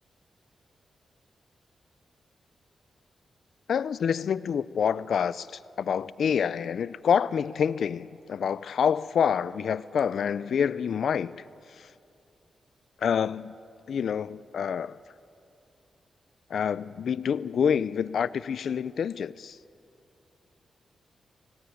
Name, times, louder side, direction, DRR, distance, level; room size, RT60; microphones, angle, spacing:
voice 1, 3.7-11.4 11.8-11.9 13.0-13.6 13.9-15.0 16.5-19.6, left 7 dB, 75° left, 0.4 m, -27 dB
18.0 x 17.0 x 9.2 m
cardioid pair, 60°, 0 cm